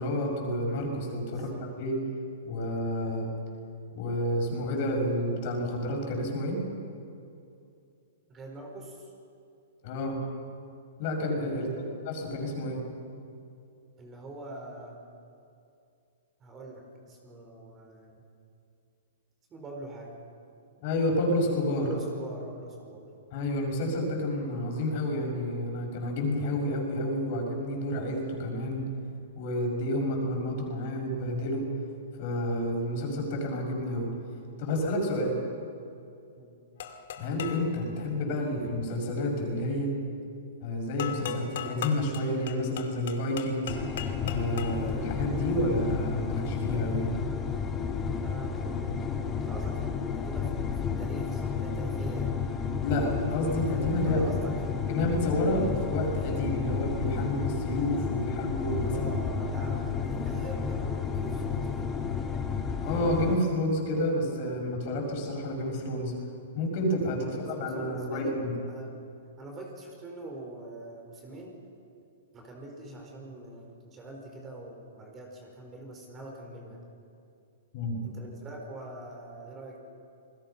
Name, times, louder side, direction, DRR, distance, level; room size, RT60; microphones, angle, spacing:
voice 1, 0.0-1.5 1.8-2.0 2.4-3.3 3.9-6.6 9.8-10.2 11.0-12.8 20.8-21.9 23.3-28.8 29.4-31.6 32.2-34.1 34.6-35.4 37.2-39.9 40.6-43.8 44.2-47.1 52.8-54.2 54.9-59.1 62.8-66.1 66.5-68.5 77.7-78.0, left 1 dB, 45° left, 1 dB, 6.3 m, -30 dB
voice 2, 1.3-1.7 8.3-9.1 11.5-12.0 14.0-15.0 16.4-18.2 19.5-20.2 21.7-23.1 36.4-36.6 39.7-39.9 48.2-52.4 54.0-54.8 58.8-61.9 67.2-69.0 69.4-71.6 72.3-76.8 78.0-79.8, right 2 dB, 20° right, 1 dB, 4.8 m, -43 dB
sound 1, 36.8-37.7 41.0-44.9, left 9 dB, 65° left, 2.3 m, -38 dB
sound 2, 43.7-63.4, left 6 dB, 20° left, 1.7 m, -32 dB
28.0 x 20.0 x 5.8 m, 2.5 s
hypercardioid pair, 140°, 0 cm